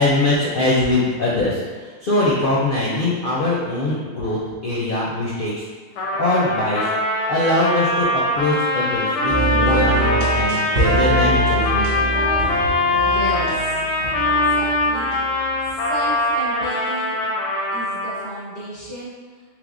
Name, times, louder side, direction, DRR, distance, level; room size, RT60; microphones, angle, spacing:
voice 1, 0.0-1.6 2.0-5.6 6.2-6.9 7.3-11.9, left 2 dB, 65° left, -5 dB, 0.5 m, -21 dB
Trumpet, 6.0-18.4, left 2 dB, 85° left, 1.0 m, -22 dB
sound 1, 9.3-15.7, right 2 dB, 75° right, 1.0 m, -24 dB
voice 2, 12.8-15.1 15.9-17.2 17.7-19.2, right 1 dB, 25° right, -9 dB, 0.6 m, -33 dB
3.4 x 3.0 x 2.5 m, 1.5 s
omnidirectional pair, 1.4 m